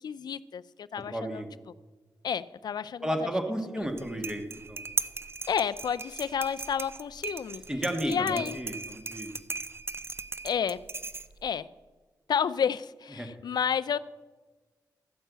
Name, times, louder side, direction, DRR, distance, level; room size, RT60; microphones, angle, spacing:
voice 1, 0.0-1.4 2.2-3.3 3.7-3.9 5.5-7.6 8.0-8.6 10.4-10.8 11.4-11.7 12.3-14.0, left 7 dB, 70° left, 15 dB, 0.4 m, -30 dB
voice 2, 1.1-1.5 3.0-4.4 4.7-4.8 7.7-9.3 13.2-13.3, right 1 dB, 10° right, 5 dB, 1.5 m, -32 dB
sound 1, 3.8-11.6, right 3 dB, 35° right, 0.6 m, -38 dB
14.0 x 5.5 x 8.0 m, 1.3 s
cardioid pair, 80°, 7 cm